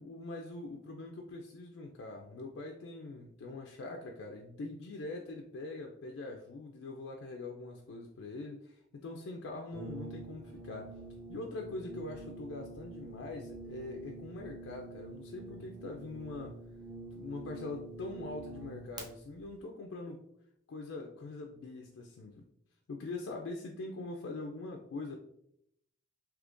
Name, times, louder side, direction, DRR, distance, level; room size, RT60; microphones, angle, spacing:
voice 1, 0.0-10.9 11.3-16.6 17.1-20.2 20.7-22.5 22.9-25.2, left 2 dB, 80° left, 1 dB, 0.4 m, -43 dB
Brass instrument, 9.7-19.1, right 2 dB, 20° right, 0.5 m, -47 dB
3.6 x 2.8 x 2.5 m, 0.77 s
head